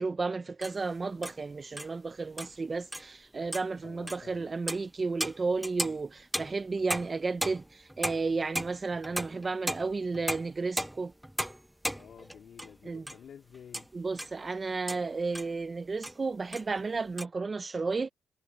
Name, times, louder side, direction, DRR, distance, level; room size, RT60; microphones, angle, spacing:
voice 1, 0.0-11.1 12.8-13.1 13.9-18.1, right 4 dB, 30° right, 0.8 m, -33 dB
sound 1, 0.6-0.8 1.2-1.4 1.8-1.9 2.4-2.6 2.9-3.1 3.5-3.7 4.1-4.2 4.7-4.9 5.2-12.8 13.1-13.2 13.5-14.3 14.9-15.0 15.3-15.5 16.0-16.2 16.5-17.2, equal, 5° right, 0.9 m, -36 dB
voice 2, 3.8-4.5 11.9-13.9, left 8 dB, 60° left, 3.0 m, -51 dB
cardioid pair, 90°, 0 cm